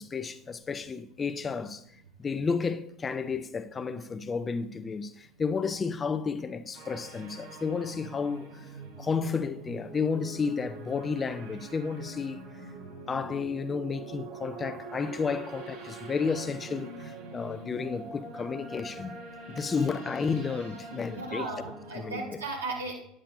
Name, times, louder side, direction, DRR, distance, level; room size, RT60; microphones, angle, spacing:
voice 1, 0.0-1.8 2.2-8.7 9.0-12.4 13.1-19.2 19.5-21.5 21.9-22.2, left 5 dB, 25° left, 0.5 m, -32 dB
sound 1, 6.7-22.4, right 3 dB, 55° right, 1.4 m, -44 dB
voice 2, 21.1-23.0, right 3 dB, 75° right, 0.7 m, -36 dB
9.9 x 7.5 x 2.5 m
figure-of-eight pair, 70°, 0 cm